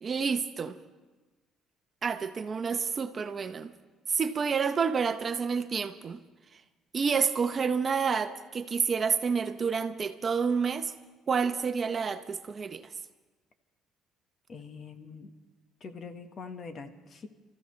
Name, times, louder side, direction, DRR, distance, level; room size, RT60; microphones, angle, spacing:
voice 1, 0.0-0.7 2.0-3.7 4.1-6.2 6.9-10.9 11.3-12.8, right 5 dB, 35° right, 0.8 m, -29 dB
voice 2, 14.5-15.3 15.8-17.3, left 5 dB, 45° left, 1.3 m, -43 dB
30.0 x 14.5 x 3.2 m
cardioid pair, 110°, 0 cm